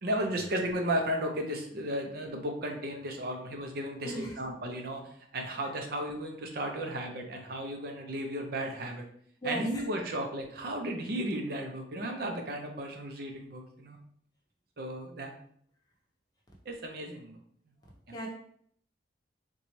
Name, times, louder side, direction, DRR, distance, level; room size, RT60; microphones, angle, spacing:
voice 1, 0.0-5.0 5.3-9.0 9.4-14.0 14.8-15.3 16.7-17.4 18.1-18.2, right 1 dB, 55° right, 3 dB, 0.5 m, -34 dB
voice 2, 4.0-4.4 9.4-9.8 18.1-18.3, right 1 dB, 20° left, -2 dB, 0.7 m, -35 dB
3.9 x 2.2 x 3.0 m, 0.63 s
head